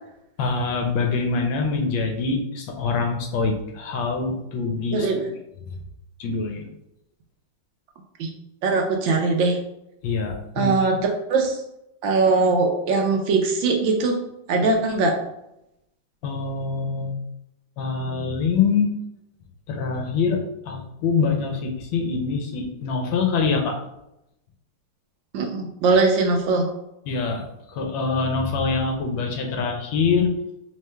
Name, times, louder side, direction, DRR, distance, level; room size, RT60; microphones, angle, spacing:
voice 1, 0.4-5.1 6.2-6.7 10.0-11.0 16.2-17.2 17.8-18.9 19.7-23.7 27.1-27.4 27.7-30.3, left 4 dB, 75° left, 3 dB, 1.4 m, -24 dB
voice 2, 4.9-5.3 8.2-8.3 8.6-9.6 10.6-11.0 11.3-11.6 12.0-14.2 14.5-15.1 25.3-26.7, right 3 dB, 75° right, 2 dB, 1.3 m, -21 dB
3.6 x 3.2 x 3.2 m, 0.84 s
omnidirectional pair, 2.2 m